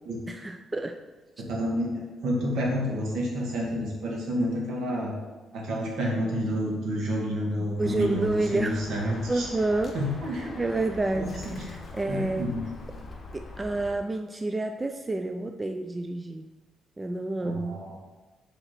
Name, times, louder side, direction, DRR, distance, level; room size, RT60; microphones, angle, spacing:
voice 1, 0.3-1.0 7.6-8.8 9.3-10.0 10.6-11.3 11.6-12.5 13.3-16.4 17.0-17.8, right 2 dB, 20° right, 5 dB, 0.4 m, -29 dB
voice 2, 1.4-5.2 5.5-9.5 9.9-10.5 11.1-11.6 12.1-12.6 17.4-18.0, equal, 75° right, -2 dB, 2.0 m, -29 dB
Bird, 7.8-13.9, left 3 dB, 35° left, 1.2 m, -42 dB
5.4 x 4.4 x 5.8 m, 1.2 s
cardioid pair, 90°, 0 cm